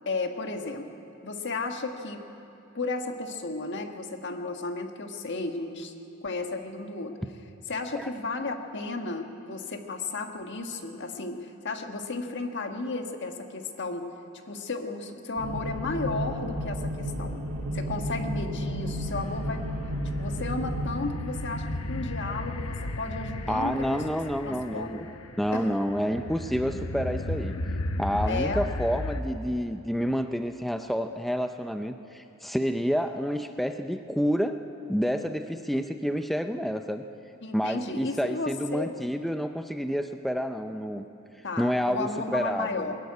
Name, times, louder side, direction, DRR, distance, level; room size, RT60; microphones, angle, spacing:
voice 1, 0.0-1.0 1.2-2.2 2.7-5.9 6.2-7.1 7.7-14.1 14.5-17.4 17.7-19.6 20.2-24.0 24.4-25.0 25.5-25.6 28.3-28.6 37.4-38.9 41.4-43.0, left 3 dB, 55° left, 5 dB, 1.5 m, -33 dB
sound 1, 15.4-20.9, equal, 75° right, 1.8 m, -32 dB
sound 2, 19.1-29.2, left 1 dB, 80° left, 1.1 m, -35 dB
voice 2, 23.5-27.5 28.0-34.6 34.9-37.0 37.5-41.0 41.6-42.9, equal, ahead, 6 dB, 0.5 m, -29 dB
21.5 x 14.0 x 9.6 m, 3.0 s
head